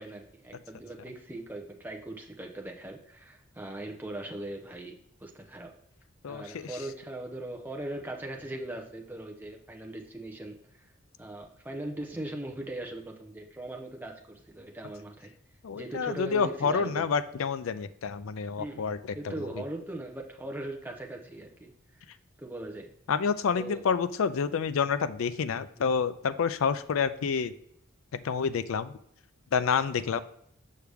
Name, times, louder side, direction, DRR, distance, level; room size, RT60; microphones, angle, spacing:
voice 1, 0.0-5.7 6.3-10.9 11.2-15.3 15.7-17.1 18.6-18.9 19.1-22.0 22.4-22.9 23.5-23.8, right 1 dB, 10° right, 1 dB, 0.8 m, -40 dB
voice 2, 6.2-6.7 15.6-19.3 23.1-27.5 28.2-28.9 29.5-30.2, left 6 dB, 75° left, 13 dB, 0.4 m, -28 dB
6.5 x 5.8 x 3.4 m, 0.72 s
head